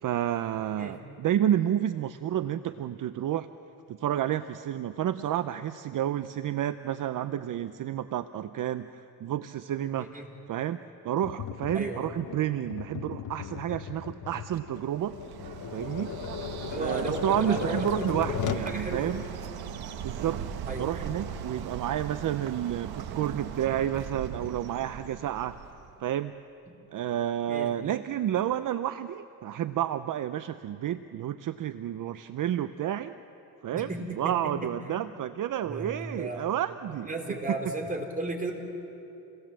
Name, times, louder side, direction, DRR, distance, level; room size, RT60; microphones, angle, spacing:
voice 1, 0.0-3.5 3.9-10.1 10.5-15.2 15.7-16.1 16.7-19.2 20.0-20.4 20.8-25.6 26.0-26.3 26.9-33.1 33.6-37.1 37.5-37.7, right 11 dB, 60° right, 12 dB, 0.7 m, -30 dB
Tap, 11.2-18.7, left 9 dB, 55° left, 1.2 m, -37 dB
voice 2, 11.7-12.1 16.7-19.3 20.7-21.0 26.7-26.8 27.5-27.7 33.7-34.5 34.9-35.0 35.6-36.4 37.0-38.5, right 2 dB, 25° right, 2 dB, 4.4 m, -35 dB
Bird, 14.5-25.9, right 8 dB, 85° right, 1.3 m, -39 dB
28.5 x 19.5 x 7.6 m, 2.9 s
cardioid pair, 95°, 36 cm